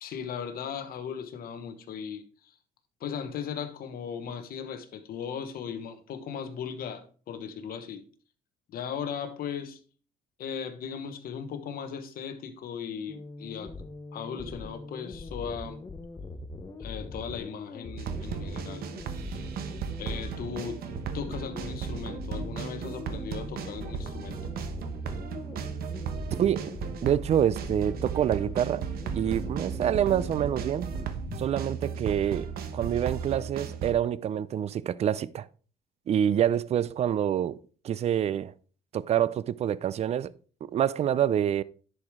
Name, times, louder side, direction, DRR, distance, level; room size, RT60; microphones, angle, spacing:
voice 1, 0.0-2.6 3.0-8.0 8.7-9.8 10.4-13.7 14.1-15.8 16.8-18.9 20.0-20.9 21.1-24.4, left 7 dB, 60° left, 1.2 m, -37 dB
sound 1, 13.1-31.6, left 2 dB, 20° left, 1.0 m, -41 dB
sound 2, 18.0-33.9, right 7 dB, 65° right, 1.0 m, -36 dB
voice 2, 26.4-26.7 27.0-28.9 29.1-30.9 31.4-35.5 36.1-37.6 37.8-38.5 38.9-40.3 40.6-41.6, right 10 dB, 40° right, 0.4 m, -26 dB
10.5 x 4.9 x 3.6 m
cardioid pair, 110°, 17 cm